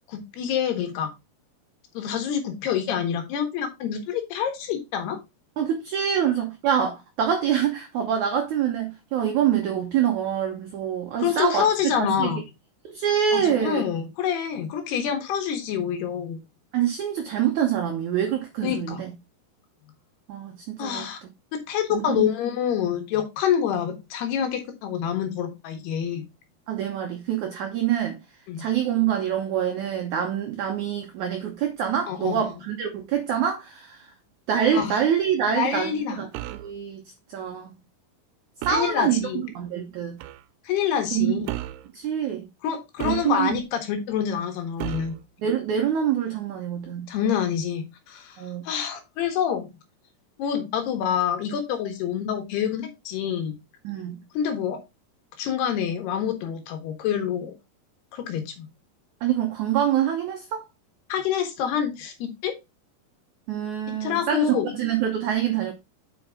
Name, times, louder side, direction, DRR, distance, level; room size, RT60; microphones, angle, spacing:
voice 1, 0.1-1.1 2.0-5.2 11.2-12.4 13.3-16.4 18.6-19.0 20.8-21.2 21.5-26.3 28.5-28.6 32.1-32.5 34.7-35.0 35.5-36.2 38.7-39.4 40.7-41.5 42.6-45.2 47.1-49.7 50.4-53.6 54.4-54.8 55.4-57.5 58.1-58.7 61.1-62.5 64.0-64.7, left 8 dB, 85° left, 3.6 m, -27 dB
voice 2, 5.6-11.7 12.0-12.3 12.8-13.9 16.7-19.1 20.3-21.1 21.9-22.2 26.7-28.2 28.6-34.1 34.5-37.0 37.3-37.7 38.6-40.2 41.1-41.4 41.9-42.5 43.0-43.6 45.4-47.1 48.4-48.6 53.8-54.2 59.2-60.6 63.5-65.7, right 9 dB, 75° right, 1.8 m, -25 dB
sound 1, 36.3-36.7 38.6-39.0 40.2-40.4 41.5-41.9 43.0-43.7 44.8-45.2, right 15 dB, 90° right, 2.6 m, -34 dB
7.6 x 5.3 x 3.6 m
omnidirectional pair, 4.5 m